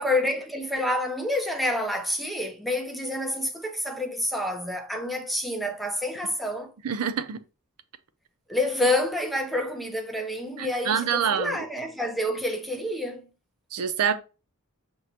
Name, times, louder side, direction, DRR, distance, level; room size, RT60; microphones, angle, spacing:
voice 1, 0.0-6.7 8.5-13.3, left 1 dB, ahead, 0.5 m, -28 dB
voice 2, 6.8-7.4 10.6-11.6 13.7-14.1, right 7 dB, 85° right, 0.4 m, -26 dB
6.1 x 2.1 x 2.8 m
head